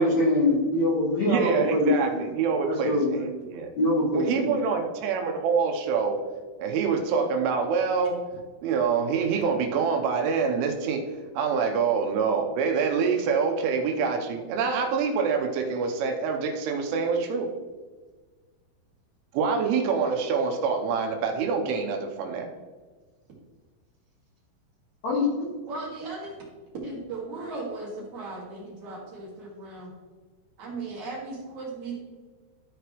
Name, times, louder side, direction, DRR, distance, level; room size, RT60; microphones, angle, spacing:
voice 1, 0.0-2.2 2.6-3.2 3.8-4.5 25.0-25.5, left 2 dB, 80° left, -5 dB, 1.6 m, -24 dB
voice 2, 1.3-3.7 4.1-6.2 6.6-8.2 8.6-11.0 11.3-17.5 19.3-22.5, right 5 dB, 80° right, 3 dB, 3.2 m, -26 dB
voice 3, 25.7-26.4 26.8-29.9 30.6-32.0, right 3 dB, 50° right, -5 dB, 2.7 m, -37 dB
13.5 x 5.0 x 3.1 m, 1.4 s
omnidirectional pair, 5.7 m